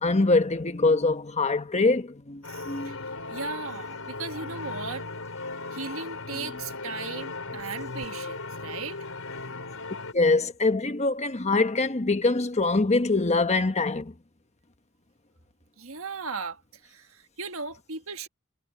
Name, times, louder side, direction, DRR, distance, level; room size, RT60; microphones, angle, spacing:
voice 1, 0.0-3.0 6.5-6.6 7.8-8.0 10.1-14.1, left 3 dB, 30° left, 1.2 m, -24 dB
sound 1, 2.4-10.1, left 3 dB, 80° left, 4.5 m, -37 dB
voice 2, 2.5-3.0 3.3-5.1 5.7-9.0 15.8-18.3, right 4 dB, 70° right, 1.5 m, -37 dB
head